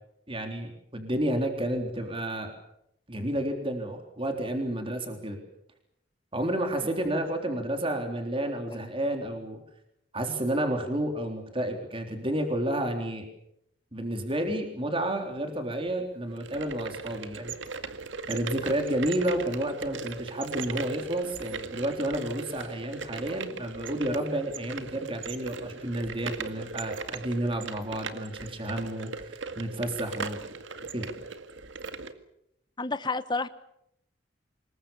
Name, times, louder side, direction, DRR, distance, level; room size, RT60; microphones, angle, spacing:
voice 1, 0.3-2.5 3.1-5.4 6.3-9.6 10.1-13.3 13.9-17.6 18.3-30.4 30.9-31.1, right 1 dB, 30° right, 5 dB, 3.5 m, -31 dB
sound 1, 16.3-32.1, right 4 dB, 85° right, 2.0 m, -38 dB
voice 2, 32.8-33.5, left 3 dB, 25° left, 13 dB, 1.2 m, -29 dB
26.0 x 22.0 x 7.1 m, 0.79 s
head